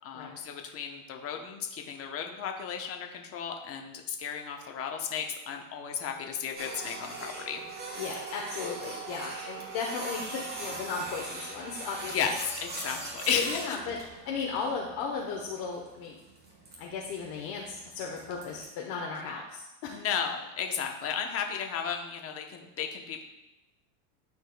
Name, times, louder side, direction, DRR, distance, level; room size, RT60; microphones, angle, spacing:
voice 1, 0.0-7.6 12.1-13.6 19.9-23.2, left 7 dB, 30° left, 3 dB, 0.9 m, -34 dB
Printer, 6.6-18.7, right 2 dB, 20° right, 1.4 m, -41 dB
voice 2, 8.0-12.1 12.9-13.1 13.3-14.0 14.2-16.2 16.8-20.0, left 5 dB, 50° left, -2 dB, 1.1 m, -36 dB
12.5 x 4.5 x 2.2 m, 0.99 s
supercardioid pair, 140°, 48 cm